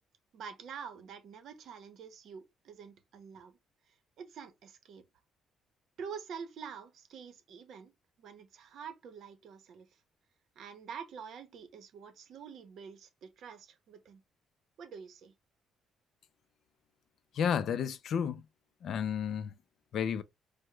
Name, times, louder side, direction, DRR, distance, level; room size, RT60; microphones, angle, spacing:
voice 1, 0.3-3.6 4.2-5.0 6.0-9.9 10.6-14.2 14.8-15.3, right 6 dB, 55° right, 0.7 m, -47 dB
voice 2, 17.4-18.4 18.8-19.5 19.9-20.2, left 7 dB, 55° left, 0.3 m, -31 dB
4.7 x 2.0 x 2.2 m
cardioid pair, 155°, 0 cm